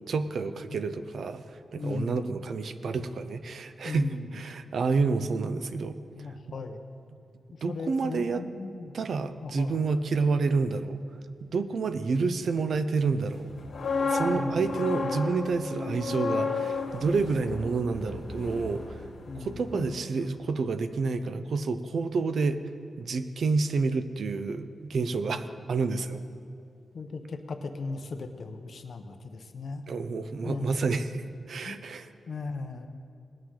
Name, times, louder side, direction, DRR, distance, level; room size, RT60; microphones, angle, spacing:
voice 1, 0.1-1.4 1.7-6.0 7.6-8.4 8.9-11.0 11.4-13.5 14.0-19.0 19.4-22.6 23.0-26.2 29.9-32.1, right 4 dB, 70° right, 11 dB, 0.6 m, -29 dB
voice 2, 1.8-2.3 3.8-4.4 6.1-6.8 7.7-8.9 9.4-9.8 14.3-14.7 19.3-19.7 25.3-25.4 26.9-29.8 30.4-30.7 31.6-31.8 32.3-32.9, left 3 dB, 60° left, 7 dB, 0.8 m, -37 dB
sound 1, 13.5-19.4 19.7-20.0, left 3 dB, 75° left, 1.9 m, -32 dB
20.0 x 8.7 x 3.8 m, 2.4 s
wide cardioid pair, 125°, 0 cm